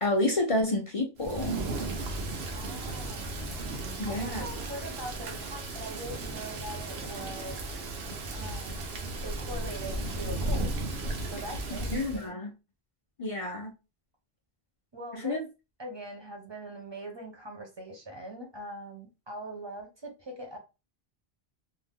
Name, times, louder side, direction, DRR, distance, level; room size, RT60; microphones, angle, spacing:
voice 1, 0.0-1.6 4.0-4.5 11.9-12.5 13.2-13.7 15.1-15.4, left 1 dB, 45° left, 0.4 m, -29 dB
Thunder / Rain, 1.2-12.3, right 2 dB, 80° right, 0.9 m, -35 dB
voice 2, 2.5-3.4 4.0-7.6 8.3-8.9 9.2-10.7 11.3-12.4 14.9-15.5 15.8-20.6, right 1 dB, 30° right, 0.6 m, -42 dB
2.6 x 2.1 x 3.5 m
omnidirectional pair, 1.1 m